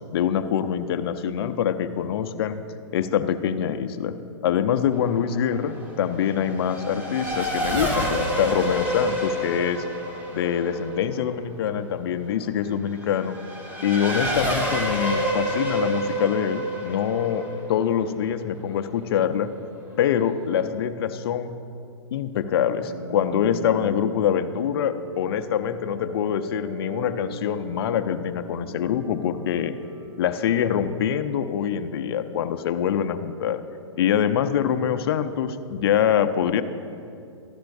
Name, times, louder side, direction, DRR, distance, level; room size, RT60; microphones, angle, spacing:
voice 1, 0.1-2.6 2.9-4.1 4.4-9.8 10.3-13.4 13.8-19.5 20.0-21.5 22.1-29.7 30.2-33.6 34.0-36.6, left 9 dB, 50° left, 9 dB, 0.6 m, -24 dB
Race car auto racing / Accelerating revving vroom, 4.9-19.0, equal, 10° right, 1.3 m, -29 dB
sound 1, 22.8-31.8, right 2 dB, 90° right, 1.5 m, -41 dB
13.0 x 11.5 x 2.6 m, 2.5 s
hypercardioid pair, 135°, 16 cm